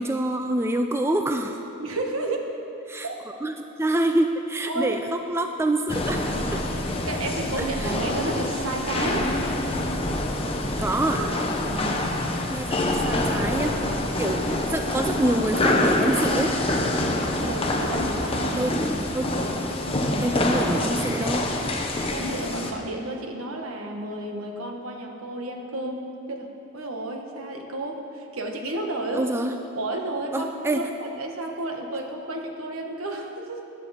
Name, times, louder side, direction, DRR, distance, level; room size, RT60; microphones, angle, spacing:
voice 1, 0.0-1.6 2.9-3.1 3.4-6.6 7.6-7.9 10.8-11.3 12.5-13.8 14.2-16.6 18.5-18.8 19.1-19.3 20.2-21.5 29.1-29.5 30.3-30.9, right 1 dB, 10° right, 5 dB, 0.3 m, -26 dB
voice 2, 1.8-2.5 3.0-3.2 4.7-5.0 6.9-9.3 11.6-12.0 17.4-18.7 22.1-26.5 26.7-29.3 29.7-33.6, right 2 dB, 70° right, 2 dB, 1.3 m, -32 dB
sound 1, 5.9-22.7, left 1 dB, 25° left, 0.9 m, -26 dB
14.5 x 10.5 x 4.3 m, 2.8 s
head